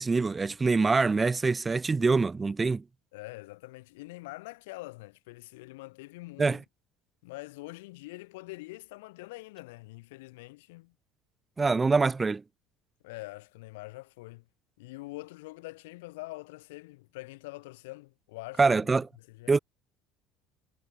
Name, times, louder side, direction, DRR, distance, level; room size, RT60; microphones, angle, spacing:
voice 1, 0.0-2.8 6.4-6.6 11.6-12.4 18.6-19.1 19.5-19.6, right 4 dB, 25° right, 0.7 m, -24 dB
voice 2, 3.1-6.6 7.2-10.9 13.0-14.5 14.8-18.8 19.3-19.5, left 22 dB, 75° left, 3.3 m, -44 dB
hypercardioid pair, 70°, 0 cm